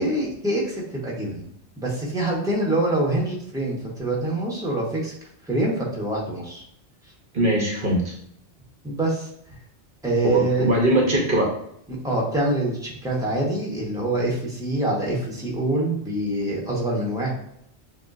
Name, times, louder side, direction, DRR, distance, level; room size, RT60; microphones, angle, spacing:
voice 1, 0.0-1.5 1.8-5.1 5.5-6.6 8.8-9.3 10.0-10.7 11.9-17.3, right 2 dB, 5° right, -4 dB, 1.1 m, -25 dB
voice 2, 7.3-8.1 10.2-11.5, right 1 dB, 55° right, -1 dB, 1.0 m, -21 dB
6.9 x 2.4 x 2.5 m, 0.72 s
omnidirectional pair, 1.1 m